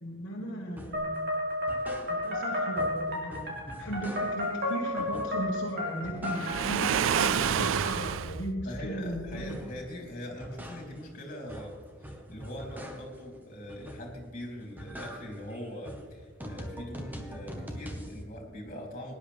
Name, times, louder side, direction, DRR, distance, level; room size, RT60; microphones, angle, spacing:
voice 1, 0.0-1.4 2.1-9.6, equal, 60° left, -3 dB, 1.6 m, -37 dB
sound 1, 0.8-1.1 1.5-2.5 2.8-4.6 5.0-5.6 5.9-6.8 7.1-9.9 10.2-13.3 13.7-14.3 14.6-18.2, equal, 10° right, 1.4 m, -43 dB
sound 2, 0.9-8.1, left 1 dB, 55° right, 3.7 m, -33 dB
Waves surf, 6.3-8.4, right 9 dB, 75° right, 0.3 m, -28 dB
voice 2, 8.6-11.7 12.0-19.1, equal, 45° left, 0 dB, 3.3 m, -42 dB
18.0 x 10.5 x 3.5 m, 1.5 s
head